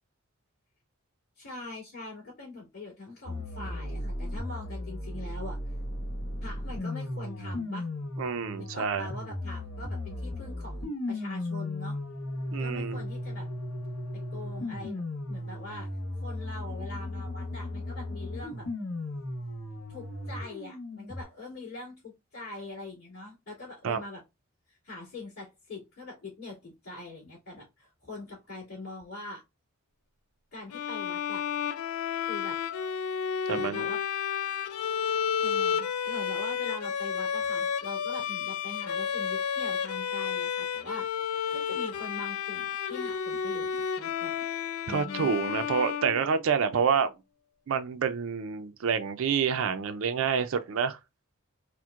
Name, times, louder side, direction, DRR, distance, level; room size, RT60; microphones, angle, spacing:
voice 1, 1.4-5.6 6.4-7.9 8.6-12.0 12.6-13.5 14.1-15.0 15.3-15.9 16.2-18.7 19.9-24.2 24.7-29.4 30.5-31.4 32.3-32.6 33.5-34.0 35.4-41.2 41.5-44.4 44.9-45.3, left 2 dB, 50° left, 2.2 m, -43 dB
sound 1, 3.3-21.2, left 1 dB, 70° left, 0.8 m, -36 dB
voice 2, 8.2-9.1 12.5-13.0 23.8-24.0 33.5-33.9 44.9-47.1 47.7-51.0, right 6 dB, 65° right, 0.4 m, -28 dB
Bowed string instrument, 30.7-46.8, left 7 dB, 90° left, 0.4 m, -31 dB
4.3 x 2.1 x 2.4 m
head